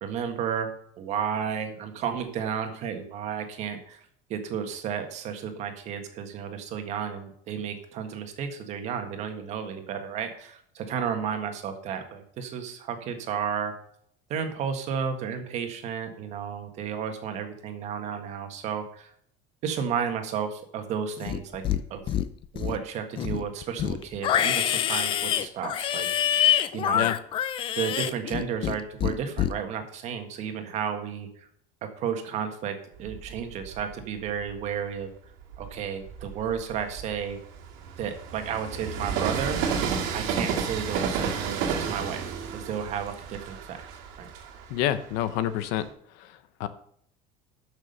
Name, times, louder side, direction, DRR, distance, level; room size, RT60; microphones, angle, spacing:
voice 1, 0.0-13.7 14.3-19.1 19.6-21.6 21.9-22.1 22.5-26.4 26.7-27.1 27.8-31.5 31.8-35.1 35.6-37.4 38.0-39.6 40.1-43.8 44.2-44.3, right 7 dB, 40° right, 6 dB, 1.6 m, -32 dB
Livestock farm animals working animals, 21.2-21.8 22.1-22.8 23.2-28.8 29.0-29.5, left 10 dB, 30° left, 0.5 m, -26 dB
Train, 33.0-34.7 35.3-45.9, right 6 dB, 75° right, 2.3 m, -32 dB
voice 2, 44.7-45.8 46.6-46.7, left 12 dB, 70° left, 12 dB, 0.9 m, -27 dB
12.5 x 6.3 x 5.4 m, 0.65 s
cardioid pair, 175°, 17 cm